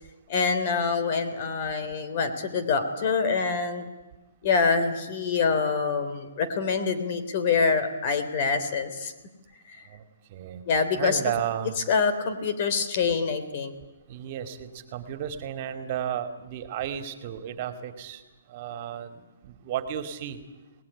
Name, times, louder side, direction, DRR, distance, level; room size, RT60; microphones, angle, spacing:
voice 1, 0.3-3.9 4.4-9.1 10.7-11.2 11.9-13.7, left 5 dB, 45° left, 10 dB, 3.4 m, -25 dB
voice 2, 10.3-10.6 11.0-11.8 14.1-18.2 18.5-20.4, right 10 dB, 40° right, 8 dB, 2.5 m, -33 dB
27.0 x 19.5 x 10.0 m, 1.1 s
hypercardioid pair, 150°, 0 cm